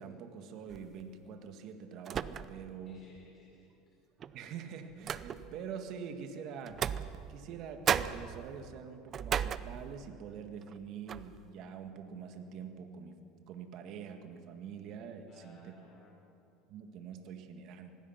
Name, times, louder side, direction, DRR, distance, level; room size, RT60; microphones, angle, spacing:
voice 1, 0.0-3.0 4.3-6.8 7.3-13.2 13.5-15.7 16.7-17.9, right 7 dB, 50° right, 6 dB, 1.8 m, -45 dB
sound 1, 0.7-1.0 2.0-2.8 3.1-3.2 4.2-5.7 6.7-7.6 7.9-10.2 10.6-10.8 11.1-11.4, right 8 dB, 35° right, 0.6 m, -36 dB
voice 2, 2.8-4.0 15.3-16.2, left 2 dB, 35° left, -3 dB, 4.2 m, -61 dB
26.0 x 19.0 x 5.9 m, 2.6 s
supercardioid pair, 130°, 0 cm